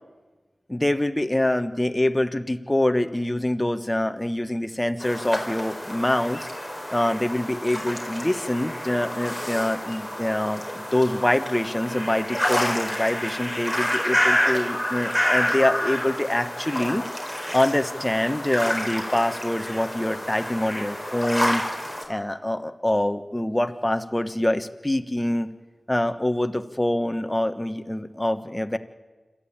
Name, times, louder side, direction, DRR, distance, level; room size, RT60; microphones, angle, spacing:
voice 1, 0.7-6.5 6.9-17.0 17.5-21.6 22.1-25.5 25.9-28.8, left 1 dB, 15° left, 9 dB, 1.2 m, -25 dB
sound 1, 5.0-22.0, equal, 5° right, 4.5 m, -28 dB
27.0 x 13.5 x 8.8 m, 1.3 s
cardioid pair, 50°, 0 cm